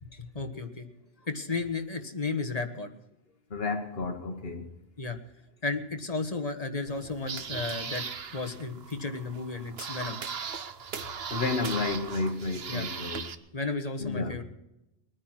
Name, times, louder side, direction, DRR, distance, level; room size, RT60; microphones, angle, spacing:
voice 1, 0.1-0.9 1.2-2.9 5.0-5.2 5.6-8.0 8.3-10.2 12.7-12.9 13.5-14.4, left 3 dB, 35° left, 1.6 m, -33 dB
voice 2, 3.5-4.7 11.3-13.3 14.0-14.4, left 3 dB, 70° left, 1.4 m, -31 dB
sound 1, 6.9-13.3, right 6 dB, 70° right, 1.2 m, -38 dB
21.5 x 9.7 x 6.1 m
omnidirectional pair, 1.1 m